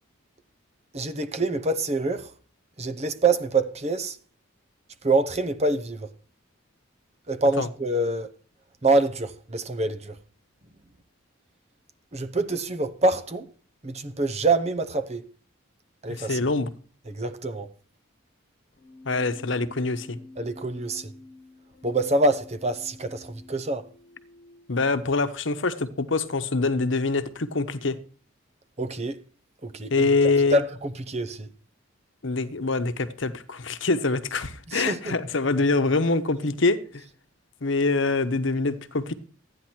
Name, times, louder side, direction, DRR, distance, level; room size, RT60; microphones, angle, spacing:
voice 1, 0.9-2.3 2.8-4.2 5.0-6.1 7.3-8.3 8.8-10.2 12.1-13.5 13.8-15.2 16.0-16.4 17.1-17.7 20.4-21.1 21.8-23.9 28.8-29.2 29.6-30.1 30.5-31.5 34.7-35.1, right 2 dB, 30° right, 0.9 m, -26 dB
voice 2, 16.1-16.7 19.0-20.2 24.7-28.0 29.9-30.6 32.2-37.0 37.6-39.1, left 3 dB, 65° left, 1.0 m, -25 dB
Keyboard (musical), 18.7-24.7, left 2 dB, 45° left, 1.4 m, -49 dB
13.5 x 9.7 x 4.5 m
head